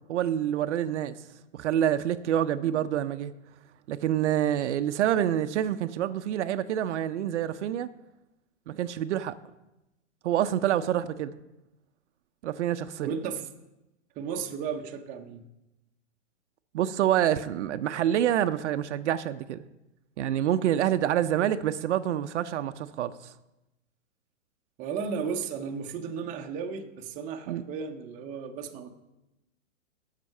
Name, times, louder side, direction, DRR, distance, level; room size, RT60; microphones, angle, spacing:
voice 1, 0.1-1.2 1.5-3.3 3.9-7.9 8.7-9.4 10.2-11.3 12.4-13.1 16.7-19.6 20.2-23.3 27.5-27.6, right 11 dB, 65° right, 11 dB, 0.6 m, -27 dB
voice 2, 2.5-2.9 13.0-13.5 14.2-15.5 24.8-28.9, right 6 dB, 20° right, 3 dB, 0.7 m, -34 dB
7.6 x 7.5 x 5.4 m, 0.95 s
hypercardioid pair, 145°, 38 cm